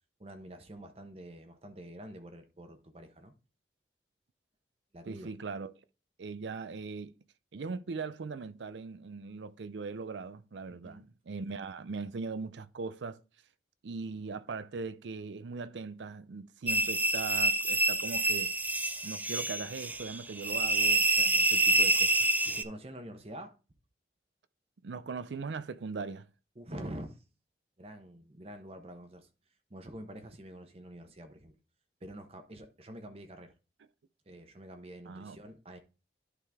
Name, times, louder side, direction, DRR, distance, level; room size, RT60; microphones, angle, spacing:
voice 1, 0.2-3.3 4.9-5.3 10.7-11.0 22.4-23.6 26.6-27.2 27.8-29.3 29.7-31.5 32.0-33.5 34.3-35.8, right 1 dB, 35° right, 0.9 m, -46 dB
voice 2, 5.1-5.7 6.2-7.1 7.5-13.2 13.8-18.5 19.0-22.3 24.8-26.3 35.1-35.4, right 4 dB, 90° right, 0.5 m, -40 dB
sound 1, 16.7-22.6, right 1 dB, 10° right, 0.3 m, -27 dB
11.0 x 3.8 x 3.5 m
head